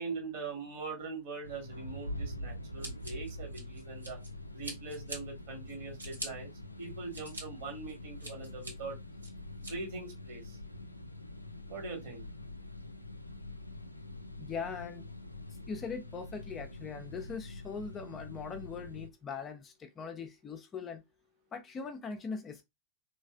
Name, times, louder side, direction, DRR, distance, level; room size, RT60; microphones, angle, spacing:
voice 1, 0.0-4.2 4.5-6.5 6.8-9.0 9.6-10.6 11.7-12.2, right 4 dB, 50° right, 1.5 m, -42 dB
sound 1, 1.4-19.1, left 1 dB, 85° left, 0.3 m, -45 dB
Scissors, 2.8-4.3 4.6-5.2 5.7-6.3 6.8-7.4 7.9-8.7 9.2-9.7, right 1 dB, 85° right, 1.3 m, -43 dB
voice 2, 14.4-15.1 15.7-21.0 21.5-22.6, left 5 dB, 25° left, 0.5 m, -41 dB
3.2 x 2.5 x 2.3 m
figure-of-eight pair, 90°, 0 cm